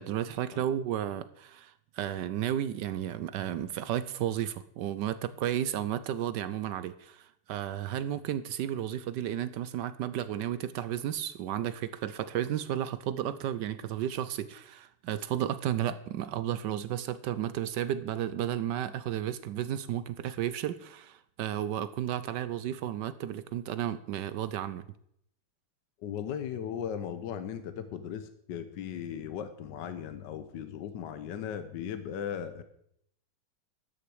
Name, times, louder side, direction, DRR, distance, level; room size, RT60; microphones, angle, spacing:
voice 1, 0.0-24.8, right 11 dB, 75° right, 14 dB, 1.0 m, -33 dB
voice 2, 26.0-32.6, left 8 dB, 65° left, 10 dB, 1.3 m, -37 dB
13.0 x 9.9 x 4.8 m, 0.71 s
omnidirectional pair, 2.3 m